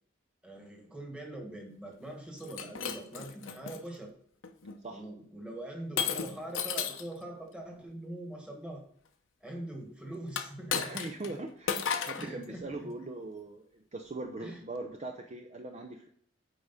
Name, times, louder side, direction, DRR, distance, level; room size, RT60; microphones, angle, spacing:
voice 1, 0.4-4.1 4.9-8.8 9.4-11.0 12.2-12.9 14.4-14.6, right 1 dB, 5° right, 1 dB, 1.5 m, -43 dB
Shatter, 2.4-3.8 4.4-4.8 6.0-7.1 10.3-11.3 11.7-12.3, left 7 dB, 75° left, 0.8 m, -34 dB
voice 2, 10.8-16.1, right 2 dB, 35° right, 4 dB, 0.6 m, -41 dB
8.6 x 4.9 x 4.1 m, 0.63 s
head